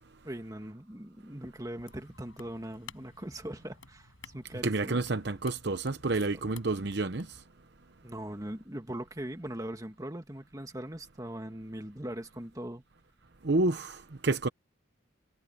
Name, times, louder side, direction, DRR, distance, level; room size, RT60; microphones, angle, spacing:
voice 1, 0.2-5.1 8.0-12.8, right 1 dB, 15° right, 1.8 m, -40 dB
sound 1, 1.8-7.5, left 5 dB, 90° left, 6.6 m, -54 dB
voice 2, 4.6-7.3 13.4-14.5, right 2 dB, 55° right, 0.9 m, -29 dB
head